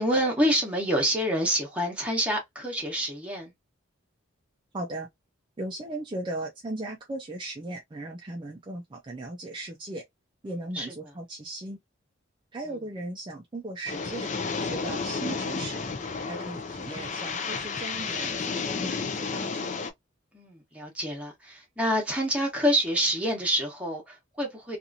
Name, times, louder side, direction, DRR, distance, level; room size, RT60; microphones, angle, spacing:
voice 1, 0.0-3.5 10.7-10.9 20.3-24.8, equal, 5° right, 1.1 m, -27 dB
voice 2, 4.7-5.1 5.6-10.0 10.4-11.8 12.5-14.3 14.6-15.8 16.3-19.8, right 2 dB, 25° right, 0.4 m, -37 dB
sound 1, 13.9-19.9, left 4 dB, 35° left, 0.4 m, -32 dB
2.8 x 2.5 x 2.6 m
head